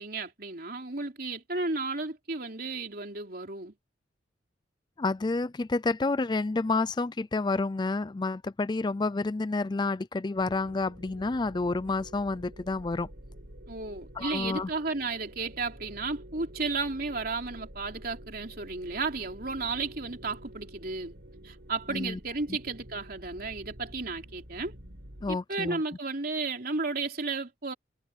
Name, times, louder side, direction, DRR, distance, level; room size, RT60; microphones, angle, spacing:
voice 1, 0.0-3.7 13.7-21.2 21.4-24.8 25.3-27.7, right 3 dB, 55° right, 3.4 m, -33 dB
voice 2, 5.0-13.1 14.2-14.7 21.9-22.2 25.2-25.8, left 3 dB, 25° left, 0.4 m, -29 dB
sound 1, 10.4-25.4, right 1 dB, 85° right, 5.2 m, -48 dB
head